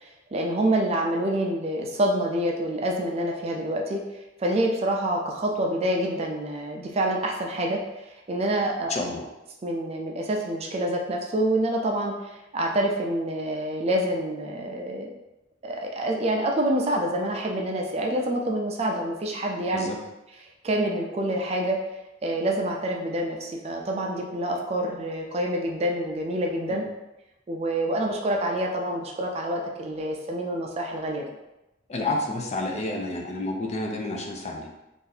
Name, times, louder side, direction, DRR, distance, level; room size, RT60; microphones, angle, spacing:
voice 1, 0.3-4.0 4.4-8.9 9.6-15.1 15.6-20.0 20.6-21.8 22.2-26.8 27.5-31.2, right 1 dB, 35° right, 1 dB, 0.4 m, -27 dB
voice 2, 8.9-9.2 19.7-20.0 26.7-26.8 31.9-34.7, left 2 dB, 35° left, 1 dB, 0.5 m, -30 dB
2.7 x 2.6 x 3.9 m, 0.97 s
head